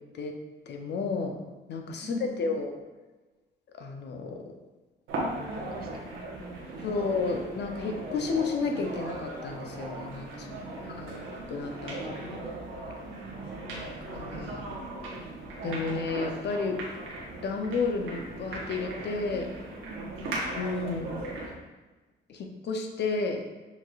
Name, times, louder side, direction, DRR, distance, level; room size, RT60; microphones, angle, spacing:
voice 1, 0.7-1.4 1.7-2.7 3.8-4.4 6.8-12.4 14.1-14.6 15.6-16.8 17.4-19.5 20.5-21.1 22.3-23.4, left 4 dB, 60° left, 3 dB, 0.7 m, -32 dB
voice 2, 2.0-2.6 5.5-7.4 10.4-11.3 13.1-13.9 19.9-20.2, right 1 dB, 50° right, 3 dB, 0.7 m, -46 dB
sound 1, 5.1-21.6, right 2 dB, 90° right, 1.1 m, -38 dB
6.8 x 3.1 x 2.4 m, 1.2 s
cardioid pair, 90°, 20 cm